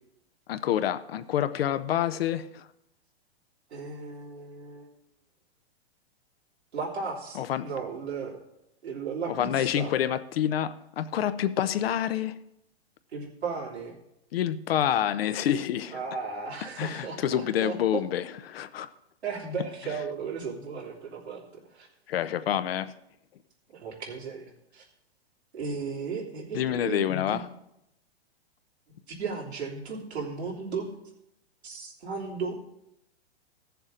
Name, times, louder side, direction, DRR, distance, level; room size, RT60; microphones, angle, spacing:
voice 1, 0.5-2.6 7.4-7.6 9.4-12.3 14.3-16.0 16.8-18.9 22.1-22.9 26.5-27.5, left 10 dB, 65° left, 13 dB, 0.8 m, -27 dB
voice 2, 3.7-4.9 6.7-8.4 8.8-9.9 13.1-13.9 15.9-18.0 19.2-21.9 23.7-24.8 25.5-27.4 29.1-30.9 31.6-32.6, right 5 dB, 85° right, -3 dB, 3.1 m, -35 dB
15.0 x 7.0 x 3.8 m, 0.82 s
hypercardioid pair, 125°, 32 cm